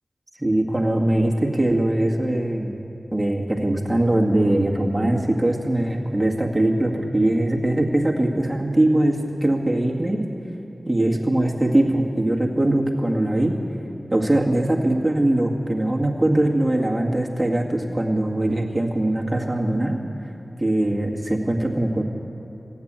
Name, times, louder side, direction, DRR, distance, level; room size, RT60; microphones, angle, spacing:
voice 1, 0.4-2.8 3.1-10.2 10.9-13.6 14.1-20.0 20.6-22.0, right 1 dB, 20° right, -1 dB, 2.0 m, -21 dB
15.0 x 9.8 x 8.8 m, 2.9 s
cardioid pair, 40°, 0 cm